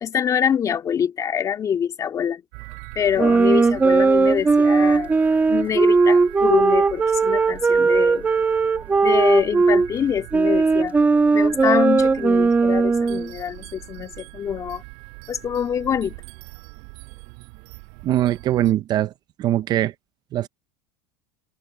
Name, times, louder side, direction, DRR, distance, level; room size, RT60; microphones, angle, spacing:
voice 1, 0.0-2.4 3.0-5.1 5.5-8.3 9.0-10.9 11.3-14.8 15.3-16.2, left 8 dB, 25° left, 2.7 m, -24 dB
sound 1, 2.5-18.7, right 40 dB or more, 60° right, 7.8 m, -41 dB
sound 2, 3.2-9.9 10.3-13.3, right 4 dB, 15° right, 1.7 m, -18 dB
voice 2, 18.0-19.1 19.4-19.9 20.3-20.5, right 13 dB, 35° right, 0.5 m, -21 dB
open air
supercardioid pair, 150°, 13 cm